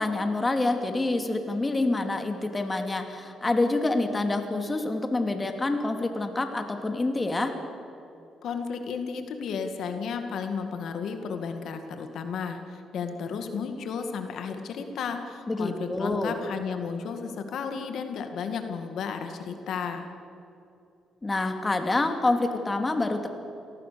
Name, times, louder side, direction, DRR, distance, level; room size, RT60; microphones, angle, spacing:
voice 1, 0.0-7.5 15.5-16.4 21.2-23.3, left 2 dB, 20° left, 5 dB, 2.6 m, -27 dB
voice 2, 8.4-20.1, left 6 dB, 70° left, 6 dB, 2.0 m, -33 dB
27.5 x 19.0 x 6.9 m, 2.6 s
cardioid pair, 90°, 0 cm